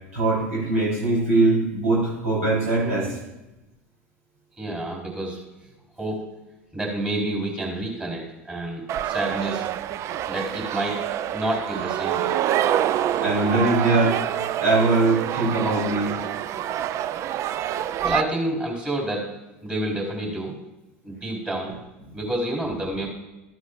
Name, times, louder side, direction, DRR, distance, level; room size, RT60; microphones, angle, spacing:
voice 1, 0.1-3.2 13.2-14.2 14.6-16.2, right 2 dB, 80° right, -6 dB, 4.0 m, -21 dB
voice 2, 4.6-5.4 6.0-6.2 6.7-9.7 10.3-11.0 11.3-12.4 18.0-19.3 19.6-20.5 21.0-21.7 22.1-23.1, right 1 dB, 10° right, -1 dB, 4.0 m, -28 dB
sound 1, 8.9-18.2, right 11 dB, 40° right, 0.4 m, -26 dB
14.0 x 9.6 x 2.5 m, 1.0 s
hypercardioid pair, 85°, 8 cm